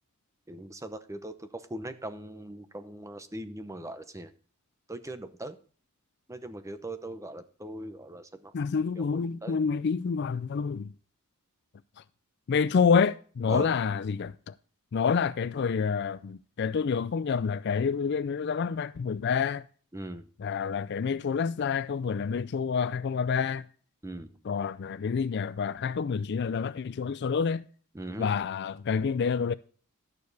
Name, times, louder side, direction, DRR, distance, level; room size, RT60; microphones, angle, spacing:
voice 1, 0.5-4.3 4.9-5.6 6.3-8.5 9.0-9.6 13.5-13.7 19.9-20.3 24.0-24.3 27.9-28.3, right 1 dB, 15° right, 0.8 m, -40 dB
voice 2, 8.5-10.9 12.5-14.5 14.9-19.6 20.4-23.6 24.4-27.7 28.2-29.5, left 6 dB, 50° left, 0.4 m, -28 dB
11.5 x 6.9 x 4.0 m
head